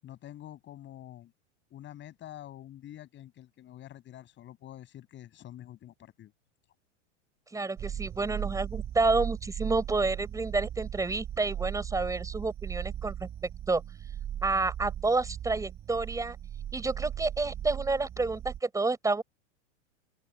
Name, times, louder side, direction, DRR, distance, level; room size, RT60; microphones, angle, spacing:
voice 1, 0.0-1.3 1.7-6.3, left 12 dB, 30° left, 7.8 m, -47 dB
voice 2, 7.5-13.3 13.7-13.8 14.4-16.4 16.7-19.2, right 3 dB, 10° right, 6.4 m, -29 dB
sound 1, 7.8-18.6, right 10 dB, 25° right, 3.3 m, -38 dB
open air
hypercardioid pair, 130°, 36 cm